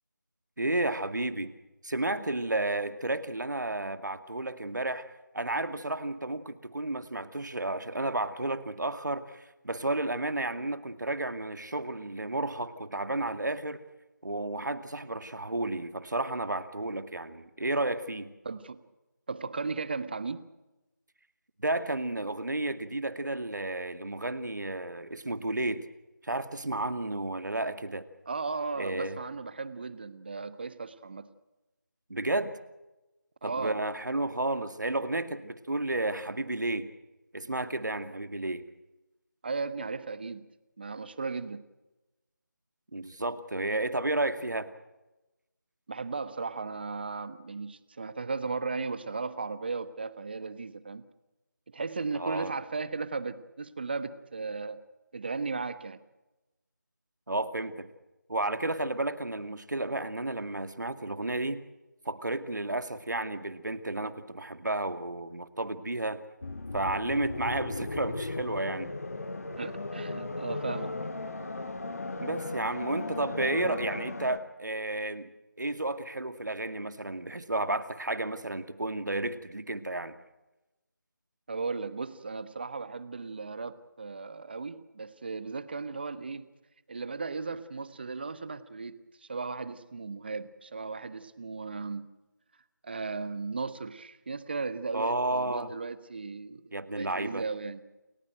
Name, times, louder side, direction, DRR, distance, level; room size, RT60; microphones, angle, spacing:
voice 1, 0.6-1.5 1.8-5.1 5.3-13.8 14.2-18.3 21.6-25.8 26.2-28.1 28.8-29.2 32.1-32.5 33.4-36.9 37.3-38.6 42.9-44.7 52.1-52.5 57.3-57.9 58.3-61.6 62.1-66.2 66.7-68.9 72.2-75.3 75.6-80.2 94.9-95.7 96.7-97.4, right 2 dB, 70° right, 10 dB, 2.3 m, -32 dB
voice 2, 18.4-18.8 19.3-20.5 28.3-31.3 33.4-33.8 39.4-40.5 40.8-41.6 45.9-51.0 51.7-54.8 55.1-56.0 69.6-71.0 81.5-86.5 86.9-92.1 92.8-97.8, right 4 dB, 30° right, 14 dB, 1.2 m, -36 dB
sound 1, 66.4-74.4, left 2 dB, 50° left, 1.6 m, -36 dB
29.0 x 15.0 x 7.8 m, 1.0 s
figure-of-eight pair, 165°, 10 cm